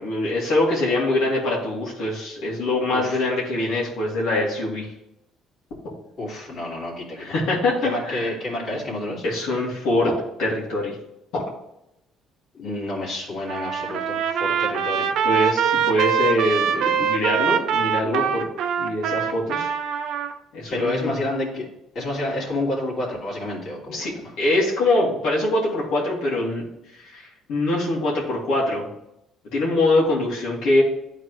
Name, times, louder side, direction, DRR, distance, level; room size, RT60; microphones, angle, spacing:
voice 1, 0.0-4.9 7.2-8.3 9.2-11.0 11.3-11.4 15.2-18.5 18.8-19.7 20.5-21.2 23.9-24.1 24.4-26.6 26.9-28.9 29.5-30.8, left 1 dB, 75° left, -5 dB, 2.2 m, -23 dB
voice 2, 2.9-3.2 6.2-7.3 7.8-9.2 12.5-15.1 20.7-21.6 21.9-24.3, left 1 dB, 45° left, -4 dB, 2.7 m, -29 dB
Trumpet, 13.5-20.3, right 7 dB, 65° right, 0.6 m, -23 dB
11.5 x 4.0 x 3.2 m, 0.85 s
cardioid pair, 140°, 0 cm